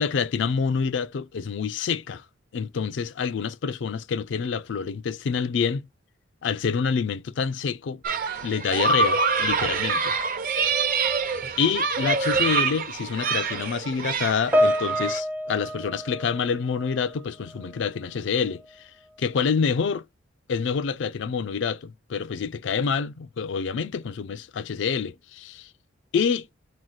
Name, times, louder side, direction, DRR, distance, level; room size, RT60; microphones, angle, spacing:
voice 1, 0.0-2.2 2.5-5.9 6.4-8.0 8.4-10.1 11.6-18.9 19.2-20.0 20.5-25.7 26.1-26.5, left 6 dB, 70° left, 0.4 m, -27 dB
sound 1, 8.0-15.2, right 4 dB, 50° right, 0.7 m, -26 dB
Piano, 14.5-17.2 17.4-17.8 18.5-18.7, equal, 10° right, 0.4 m, -27 dB
4.7 x 2.1 x 3.9 m
head